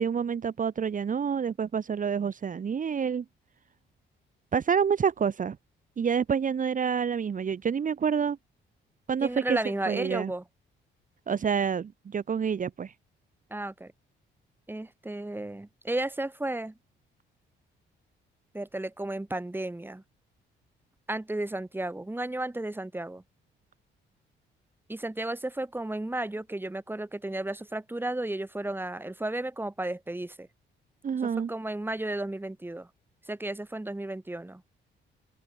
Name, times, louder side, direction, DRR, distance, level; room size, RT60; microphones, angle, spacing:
voice 1, 0.0-3.2 4.5-5.6 6.0-8.4 9.1-9.6 9.9-10.3 11.3-12.9 31.0-31.5, right 7 dB, 40° right, 1.5 m, -28 dB
voice 2, 9.2-10.4 13.5-13.9 14.7-16.7 18.5-20.0 21.1-23.2 24.9-30.5 31.2-32.9 33.3-34.6, right 1 dB, 10° right, 3.7 m, -33 dB
open air
cardioid pair, 90°, 20 cm